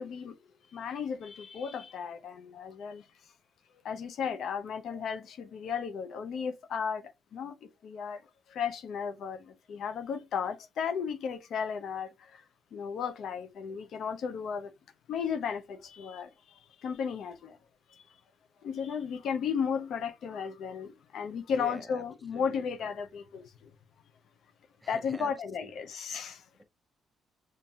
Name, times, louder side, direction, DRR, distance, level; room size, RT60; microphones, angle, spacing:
voice 1, 0.0-3.1 3.8-8.2 8.5-12.4 12.7-14.7 15.1-17.6 17.9-18.0 18.6-23.7 24.9-26.4, left 6 dB, 70° left, 0.5 m, -35 dB
voice 2, 21.5-22.0 22.3-22.9 24.8-25.3 25.6-25.8, right 1 dB, 5° right, 0.6 m, -46 dB
5.5 x 2.5 x 2.3 m
cardioid pair, 90°, 0 cm